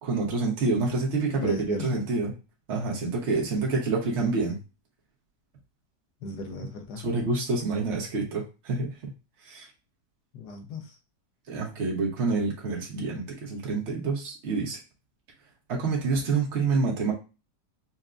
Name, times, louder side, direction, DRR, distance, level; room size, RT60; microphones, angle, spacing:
voice 1, 0.0-2.3 2.7-4.6 7.0-9.1 9.5-9.7 11.5-14.8 15.7-17.1, right 3 dB, 45° right, -2 dB, 1.2 m, -27 dB
voice 2, 1.4-2.0 3.3-3.4 6.2-7.0 10.3-11.0, left 2 dB, 70° left, 4 dB, 1.3 m, -36 dB
5.6 x 2.2 x 2.5 m, 0.30 s
omnidirectional pair, 1.9 m